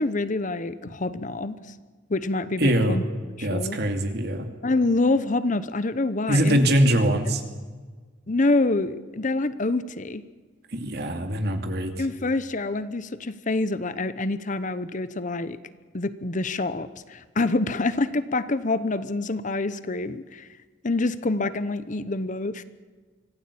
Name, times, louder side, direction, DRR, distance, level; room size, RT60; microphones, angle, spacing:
voice 1, 0.0-1.6 2.1-3.0 3.4-3.8 4.6-6.6 7.2-7.3 8.3-10.2 12.0-15.6 15.9-20.5 20.8-22.6, left 2 dB, 40° left, 14 dB, 0.9 m, -26 dB
voice 2, 2.6-3.0 3.4-4.5 6.3-7.4 10.7-11.9, equal, 55° right, 6 dB, 2.6 m, -22 dB
25.0 x 16.5 x 8.6 m, 1.4 s
head